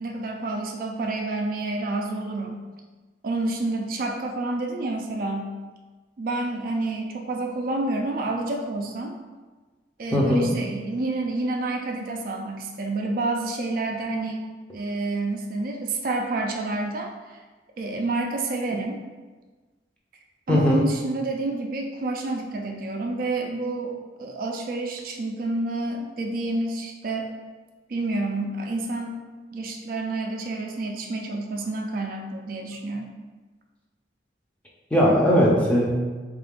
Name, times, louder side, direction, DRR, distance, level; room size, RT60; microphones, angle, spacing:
voice 1, 0.0-2.6 3.2-5.5 6.2-9.1 10.0-14.4 14.7-17.1 17.8-19.0 20.5-23.9 24.2-27.3 27.9-29.2 29.5-33.1, right 2 dB, 50° right, 2 dB, 0.3 m, -29 dB
voice 2, 10.1-10.5 20.5-20.8 34.9-35.9, equal, 5° left, -4 dB, 0.5 m, -19 dB
3.7 x 2.4 x 3.5 m, 1.3 s
head